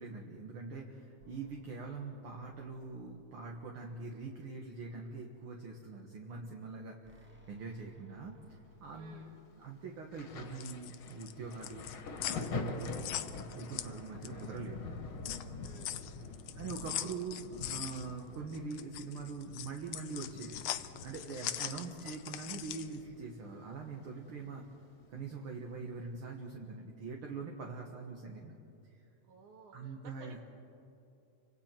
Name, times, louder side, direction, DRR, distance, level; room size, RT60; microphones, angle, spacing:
voice 1, 0.0-8.3 8.8-9.2 9.5-11.9 12.3-12.9 13.5-14.9 16.6-24.7 25.1-28.5 29.7-30.4, right 4 dB, 55° right, 0 dB, 2.1 m, -43 dB
sound 1, 1.2-5.6 7.0-11.9 13.4-17.8, left 1 dB, 10° right, 0.6 m, -64 dB
voice 2, 8.9-9.4 14.3-14.7 15.6-16.8 17.3-17.5 21.6-22.0 29.2-30.4, right 4 dB, 90° right, 4 dB, 3.3 m, -57 dB
Thunder, 10.1-23.5 23.7-25.1 25.9-26.1, left 3 dB, 50° left, 2.2 m, -45 dB
sound 2, 10.4-14.5 14.9-23.0, left 12 dB, 75° left, 1.5 m, -42 dB
30.0 x 26.0 x 4.5 m, 2.7 s
omnidirectional pair, 3.4 m